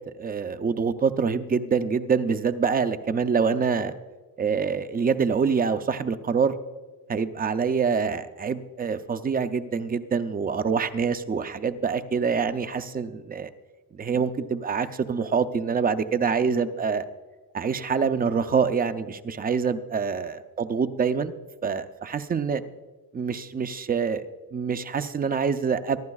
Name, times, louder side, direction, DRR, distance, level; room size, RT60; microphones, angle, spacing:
voice 1, 0.1-3.9 4.4-6.6 7.1-13.5 13.9-17.0 17.5-22.6 23.1-24.2 24.5-26.0, right 5 dB, 25° right, 10 dB, 0.5 m, -25 dB
24.0 x 12.0 x 2.3 m, 1.3 s
cardioid pair, 170°, 38 cm